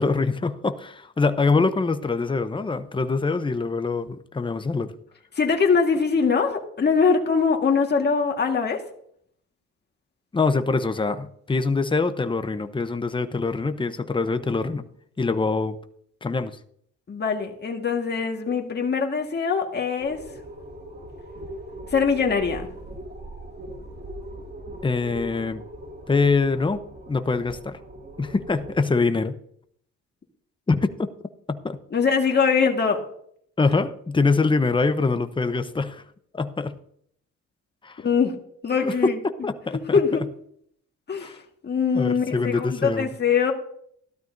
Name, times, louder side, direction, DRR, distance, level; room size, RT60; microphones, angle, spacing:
voice 1, 0.0-4.9 10.3-14.8 15.2-15.8 16.2-16.6 24.8-25.6 26.1-26.8 27.1-27.8 28.2-29.4 30.7-30.9 31.5-31.8 33.6-36.0 36.3-36.8 37.8-38.0 38.8-39.1 39.4-40.0 41.2-41.4 41.9-43.1, left 4 dB, 15° left, 10 dB, 0.8 m, -24 dB
voice 2, 5.4-8.8 17.1-20.2 21.9-22.7 31.9-33.0 38.0-38.4 38.6-39.2 39.9-40.2 41.1-41.3 41.6-43.5, left 5 dB, 35° left, 2 dB, 1.7 m, -22 dB
sound 1, 20.0-28.7, right 1 dB, 30° right, 2.4 m, -40 dB
14.5 x 12.5 x 2.7 m, 0.67 s
cardioid pair, 90°, 30 cm